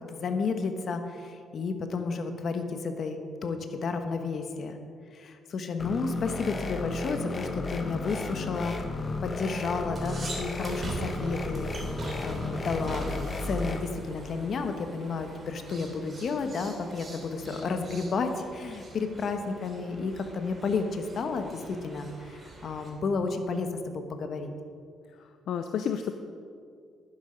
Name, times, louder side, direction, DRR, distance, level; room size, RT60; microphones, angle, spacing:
voice 1, 0.1-4.8 5.1-8.8 9.2-11.7 12.2-24.5, left 4 dB, 55° left, 7 dB, 1.2 m, -32 dB
sound 1, 5.8-13.8, left 2 dB, 35° left, 1.2 m, -34 dB
sound 2, 9.7-22.9, right 2 dB, 35° right, 2.9 m, -43 dB
voice 2, 25.2-26.1, left 8 dB, 70° left, 7 dB, 0.6 m, -31 dB
11.0 x 10.0 x 5.2 m, 2.3 s
cardioid pair, 90°, 0 cm